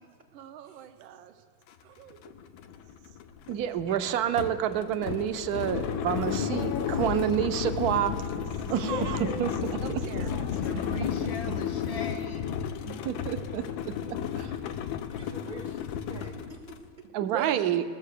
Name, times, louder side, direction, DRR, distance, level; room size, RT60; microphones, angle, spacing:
voice 1, 0.3-1.4 1.8-2.3 9.1-9.3 9.8-11.1 17.2-17.8, right 10 dB, 85° right, 7 dB, 1.5 m, -41 dB
sound 1, 1.7-1.8 2.1-16.9, left 8 dB, 85° left, 1.4 m, -33 dB
voice 2, 3.5-10.0 12.9-14.5 17.1-17.8, right 10 dB, 65° right, 10 dB, 1.0 m, -29 dB
voice 3, 6.2-7.6 8.6-9.6 10.4-12.6, left 3 dB, 65° left, 6 dB, 1.8 m, -38 dB
voice 4, 10.2-10.6 12.9-14.0 15.1-17.0, right 3 dB, 40° right, 5 dB, 0.7 m, -48 dB
19.5 x 7.1 x 6.6 m, 2.1 s
omnidirectional pair, 2.1 m